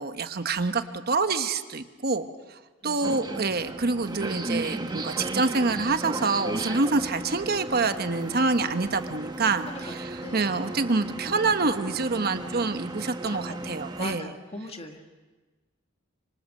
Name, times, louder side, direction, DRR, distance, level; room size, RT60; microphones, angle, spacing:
voice 1, 0.0-2.3 2.8-14.3, right 3 dB, 50° right, 9 dB, 1.2 m, -26 dB
voice 2, 2.8-3.3 9.7-10.6 13.3-15.1, left 2 dB, 30° left, 4 dB, 1.9 m, -41 dB
sound 1, 3.0-14.2, right 2 dB, 20° right, 1.0 m, -35 dB
26.0 x 25.5 x 6.6 m, 1.3 s
head